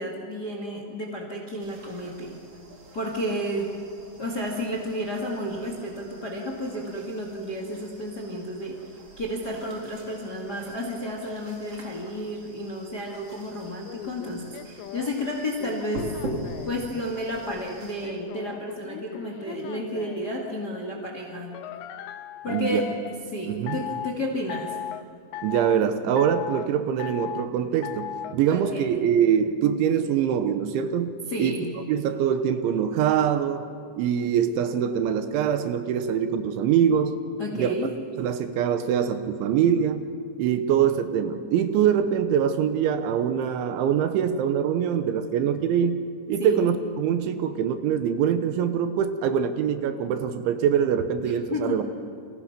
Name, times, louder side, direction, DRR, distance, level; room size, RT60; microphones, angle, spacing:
voice 1, 0.0-2.4 2.9-3.7 4.2-8.8 9.2-16.1 16.6-21.6 22.4-22.9 23.3-24.7 28.5-29.0 31.3-31.7 37.4-37.9 46.4-46.7 51.5-51.8, equal, 35° left, 1 dB, 1.5 m, -31 dB
sound 1, 1.6-18.1, right 1 dB, 35° right, 3.6 m, -43 dB
sound 2, 13.8-16.8 17.3-20.3 21.5-23.2 23.7-24.1 24.5-25.0 25.3-25.8 26.2-26.7 27.0-27.5 27.8-28.4, left 10 dB, 80° left, 2.9 m, -37 dB
voice 2, 22.5-22.8 23.5-23.8 25.4-31.1 31.4-31.6 31.9-33.7 34.0-37.2 37.5-40.1 40.4-46.0 46.3-51.8, right 8 dB, 80° right, 9 dB, 3.3 m, -24 dB
29.0 x 25.5 x 6.0 m, 2.4 s
omnidirectional pair, 5.6 m